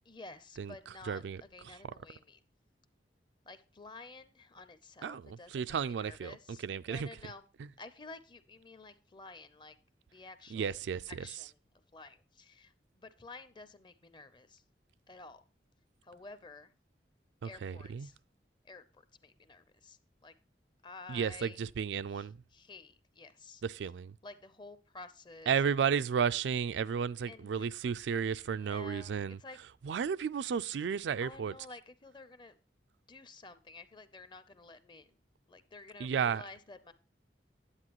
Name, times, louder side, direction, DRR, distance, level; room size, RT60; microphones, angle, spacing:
voice 1, 0.0-2.4 3.4-7.5 7.8-9.8 10.1-10.8 11.1-11.6 11.9-14.6 15.1-15.4 16.0-16.7 17.4-18.2 18.6-20.3 20.8-21.6 22.1-23.6 24.2-25.7 27.2-27.7 28.5-29.6 31.2-32.6 33.1-35.2 35.5-36.9, left 3 dB, 25° left, 0.6 m, -51 dB
voice 2, 1.1-1.4 5.0-6.3 6.6-7.1 10.5-11.0 17.4-18.1 21.1-22.4 23.6-24.1 25.5-29.4 29.9-31.5 36.0-36.4, right 7 dB, 85° right, 0.4 m, -33 dB
9.8 x 8.3 x 3.0 m
head